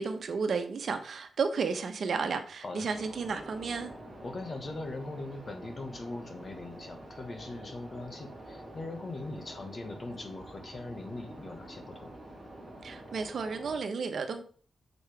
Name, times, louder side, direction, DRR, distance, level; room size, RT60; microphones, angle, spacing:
voice 1, 0.0-3.9 12.8-14.4, right 5 dB, 65° right, 7 dB, 1.3 m, -32 dB
sound 1, 2.9-13.8, right 1 dB, 25° right, 3.0 m, -47 dB
voice 2, 4.2-12.1, left 2 dB, 40° left, 5 dB, 1.8 m, -41 dB
8.9 x 7.1 x 3.6 m, 0.43 s
wide cardioid pair, 115°, 0 cm